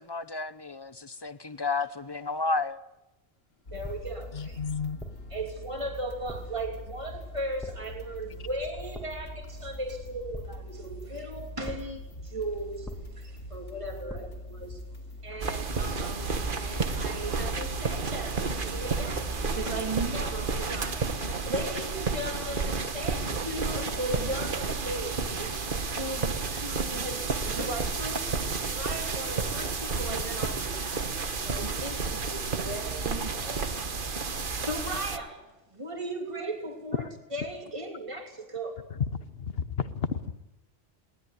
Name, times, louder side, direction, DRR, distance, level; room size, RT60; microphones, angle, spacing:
voice 1, 0.1-2.8, left 3 dB, 25° left, 0.8 m, -31 dB
sound 1, 3.7-21.5, left 1 dB, 80° left, 3.4 m, -43 dB
voice 2, 3.7-4.6 5.3-14.8 15.2-19.3 19.5-31.1 31.4-35.4 35.7-38.8, right 1 dB, 25° right, 3.0 m, -37 dB
sound 2, 3.8-4.3 5.0-5.4 6.3-6.7 7.6-8.1 8.9-9.4 10.3-10.9 11.6-12.1 12.8-13.4 14.1-14.5, equal, ahead, 2.4 m, -43 dB
voice 3, 4.3-5.0 37.0-37.1 38.9-39.0 39.4-40.4, left 6 dB, 55° left, 1.3 m, -32 dB
sound 3, 15.4-35.2, right 4 dB, 45° right, 1.4 m, -31 dB
21.5 x 19.0 x 9.6 m
omnidirectional pair, 1.2 m